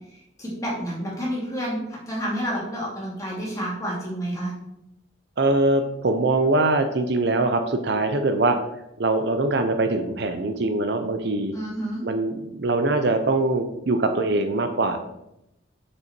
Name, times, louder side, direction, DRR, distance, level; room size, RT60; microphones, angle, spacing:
voice 1, 0.4-4.5 11.5-12.0, equal, 15° left, -5 dB, 2.5 m, -29 dB
voice 2, 5.4-8.6 9.0-11.5 12.0-15.0, right 2 dB, 60° right, 7 dB, 0.6 m, -22 dB
6.6 x 5.6 x 4.4 m, 0.84 s
head